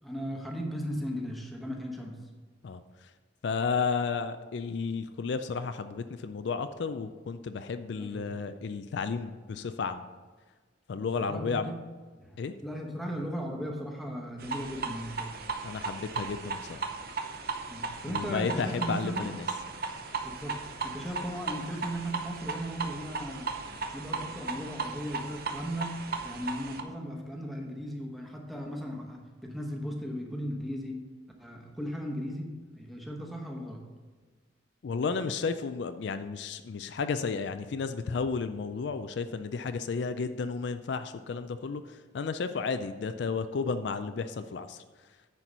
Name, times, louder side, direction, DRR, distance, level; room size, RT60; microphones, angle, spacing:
voice 1, 0.0-2.2 8.0-8.4 11.0-11.8 12.2-15.4 17.7-19.3 20.2-23.5 23.9-31.0 31.4-33.8, equal, ahead, 0 dB, 1.0 m, -37 dB
voice 2, 3.4-10.0 10.9-11.7 12.4-12.5 15.6-16.8 18.1-19.4 34.8-44.8, left 5 dB, 65° left, 10 dB, 0.4 m, -32 dB
sound 1, 14.4-26.8, right 4 dB, 55° right, 0.7 m, -36 dB
9.8 x 4.6 x 5.4 m, 1.4 s
head